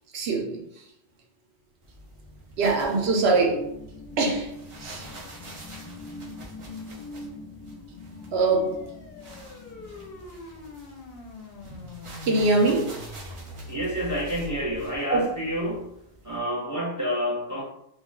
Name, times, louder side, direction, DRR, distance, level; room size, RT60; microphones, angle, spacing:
voice 1, 0.1-0.9 2.6-3.6 4.2-4.5 4.8-5.1 8.3-8.9 11.6-11.8 12.2-12.9 15.1-15.3, right 3 dB, 65° right, 1 dB, 0.8 m, -23 dB
sound 1, 1.8-16.4, right 2 dB, 45° right, 0.4 m, -48 dB
sound 2, 1.9-11.1, left 2 dB, 30° left, 0.7 m, -44 dB
sound 3, 8.0-15.0, left 2 dB, 65° left, 0.7 m, -43 dB
voice 2, 13.7-15.9 16.2-17.6, equal, 20° right, -6 dB, 0.7 m, -29 dB
2.3 x 2.3 x 3.5 m, 0.77 s
omnidirectional pair, 1.2 m